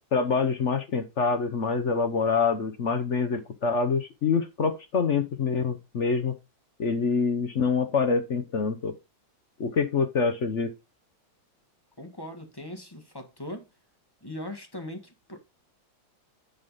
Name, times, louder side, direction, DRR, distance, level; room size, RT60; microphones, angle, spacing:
voice 1, 0.1-6.3 6.8-8.9 9.6-10.7, left 5 dB, 55° left, 0.8 m, -26 dB
voice 2, 12.0-13.7 14.2-15.4, left 1 dB, 15° left, 1.2 m, -39 dB
10.0 x 4.0 x 5.4 m
omnidirectional pair, 2.2 m